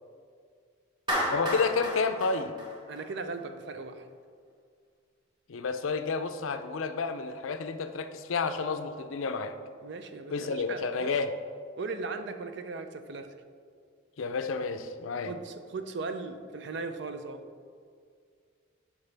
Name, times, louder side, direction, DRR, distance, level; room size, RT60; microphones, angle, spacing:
Clapping, 1.1-3.4, equal, 25° right, 1.3 m, -32 dB
voice 1, 1.3-2.6 5.5-9.6 10.3-11.3 14.2-15.3, left 4 dB, 85° left, 9 dB, 0.5 m, -30 dB
voice 2, 2.9-4.1 9.8-11.1 11.8-13.3 15.3-17.4, right 3 dB, 60° right, 9 dB, 0.5 m, -38 dB
9.4 x 5.9 x 3.4 m, 2.2 s
head